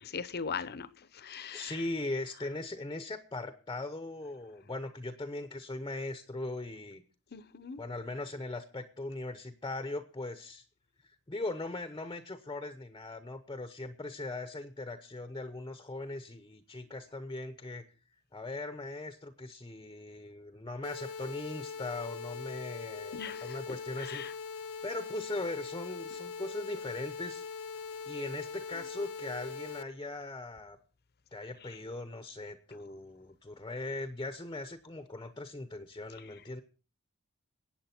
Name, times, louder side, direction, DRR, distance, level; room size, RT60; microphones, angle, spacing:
voice 1, 0.0-1.8 7.3-7.8 23.1-23.6 24.0-24.3 36.2-36.3, left 6 dB, 45° left, 0.8 m, -40 dB
voice 2, 1.5-7.0 7.8-10.6 11.3-17.8 18.3-24.2 24.8-27.4 28.1-30.8 31.3-36.6, left 2 dB, 20° left, 0.8 m, -39 dB
sound 1, 20.8-29.8, left 5 dB, 80° left, 0.9 m, -42 dB
22.0 x 8.8 x 4.4 m
head